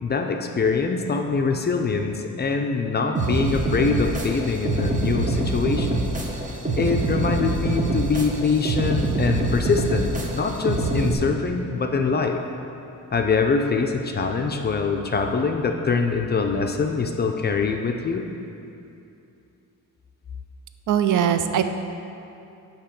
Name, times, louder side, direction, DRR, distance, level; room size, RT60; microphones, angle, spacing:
voice 1, 0.0-6.2 6.8-12.4 13.1-18.3, left 4 dB, 30° left, 4 dB, 0.4 m, -24 dB
sound 1, 3.1-11.1, right 2 dB, 25° right, 0.7 m, -25 dB
voice 2, 20.9-21.6, right 9 dB, 70° right, 8 dB, 0.5 m, -20 dB
8.4 x 3.0 x 5.9 m, 2.7 s
cardioid pair, 110°, 32 cm